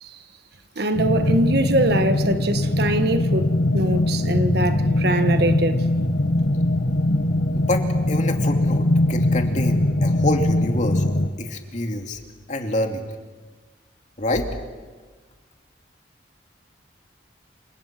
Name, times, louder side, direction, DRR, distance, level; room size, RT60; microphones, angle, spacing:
voice 1, 0.8-5.8, right 1 dB, 60° right, 1.5 m, -23 dB
sound 1, 1.0-11.3, left 1 dB, 70° left, 1.7 m, -21 dB
voice 2, 7.5-12.2 12.5-13.1 14.2-14.5, left 1 dB, 40° left, 2.6 m, -27 dB
29.0 x 26.5 x 6.0 m
head